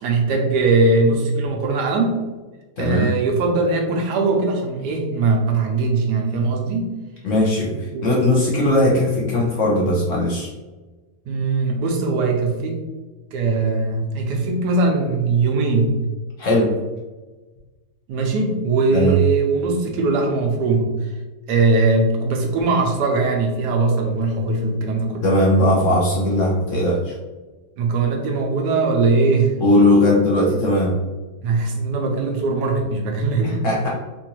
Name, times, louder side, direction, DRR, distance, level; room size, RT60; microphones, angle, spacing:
voice 1, 0.0-2.1 2.8-6.9 7.9-8.1 11.3-12.8 13.3-16.0 18.1-21.1 21.5-25.2 27.8-29.6 31.4-33.7, right 3 dB, 75° right, 2 dB, 1.2 m, -20 dB
voice 2, 2.8-3.1 7.2-10.5 16.4-16.7 18.9-19.2 25.2-27.1 29.6-31.0 33.4-33.9, left 1 dB, 60° left, -4 dB, 0.9 m, -18 dB
3.8 x 2.6 x 2.8 m, 1.2 s
omnidirectional pair, 1.8 m